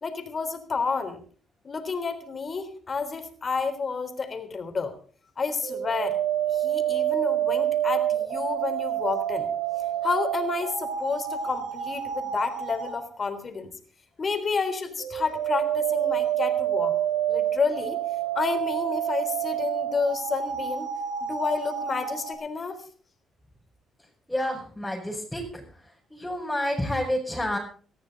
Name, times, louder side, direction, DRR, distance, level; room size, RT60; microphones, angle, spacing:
voice 1, 0.0-1.2 1.6-4.9 5.4-6.2 6.5-9.5 10.0-13.7 14.2-17.0 17.3-18.0 18.3-20.9 21.2-22.8, left 4 dB, 40° left, 9 dB, 3.6 m, -30 dB
sound 1, 5.6-13.0 15.0-22.3, right 10 dB, 90° right, 4.4 m, -28 dB
voice 2, 24.3-25.6 26.1-27.6, left 1 dB, 5° left, -4 dB, 5.4 m, -29 dB
19.0 x 14.0 x 4.1 m, 0.43 s
cardioid pair, 85°, 0 cm